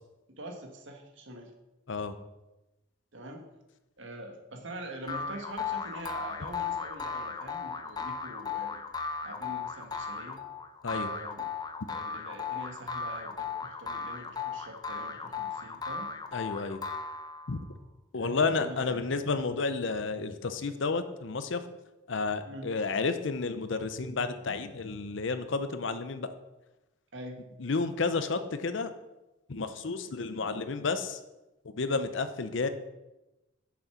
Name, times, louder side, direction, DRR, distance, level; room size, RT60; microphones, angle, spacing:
voice 1, 0.4-1.5 3.1-3.5 4.0-8.8 9.2-10.4 10.8-11.5 11.8-16.1 18.2-19.0 22.4-22.7 27.1-27.4, right 1 dB, 65° right, 3 dB, 1.4 m, -44 dB
sound 1, 5.1-17.6, left 5 dB, 20° left, 0.5 m, -36 dB
voice 2, 16.3-16.8 17.5-17.6 18.1-21.6 22.1-26.3 27.6-28.9 29.5-31.2 31.7-32.7, left 4 dB, 65° left, 10 dB, 0.7 m, -31 dB
7.0 x 6.3 x 5.8 m, 1.0 s
head